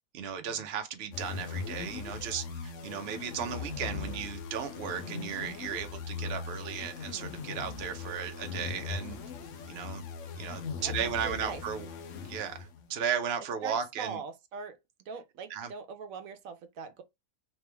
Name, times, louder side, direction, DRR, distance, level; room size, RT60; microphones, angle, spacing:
voice 1, 0.1-9.2 9.7-10.0 10.4-11.9 12.2-14.2 15.5-15.7, right 8 dB, 55° right, 0.9 m, -35 dB
sound 1, 1.1-12.9, left 5 dB, 70° left, 1.1 m, -40 dB
voice 2, 11.2-11.6 13.6-14.8 15.0-17.0, right 5 dB, 85° right, 1.2 m, -42 dB
3.4 x 3.3 x 3.3 m
omnidirectional pair, 1.4 m